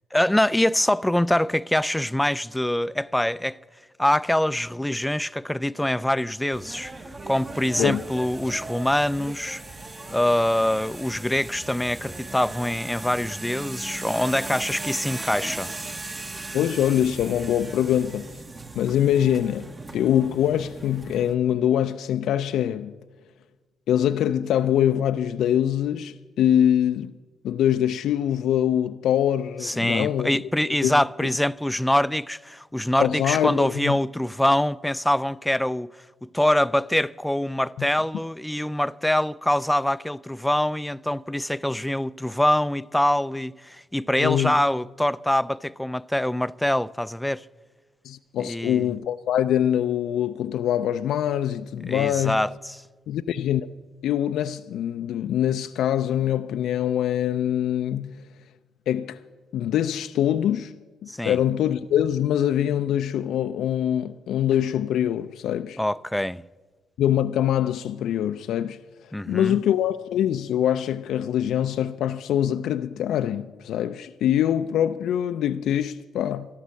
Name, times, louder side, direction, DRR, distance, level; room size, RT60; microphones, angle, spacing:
voice 1, 0.1-3.6 4.0-6.9 7.3-9.6 10.1-15.7 29.6-35.9 36.2-47.5 48.4-48.9 51.9-52.8 61.1-61.4 65.8-66.4 69.1-69.6, left 1 dB, 5° left, 0.4 m, -24 dB
sound 1, 6.5-21.4, right 2 dB, 30° right, 1.2 m, -38 dB
voice 2, 16.5-18.3 18.8-22.9 23.9-27.1 27.4-30.4 30.7-30.9 33.0-34.0 37.8-37.9 44.2-44.5 48.0-52.4 53.1-53.6 54.0-58.2 58.9-59.2 59.5-65.8 67.0-68.8 69.3-76.5, left 10 dB, 75° left, 0.4 m, -24 dB
13.0 x 12.0 x 7.5 m
supercardioid pair, 55°, 0 cm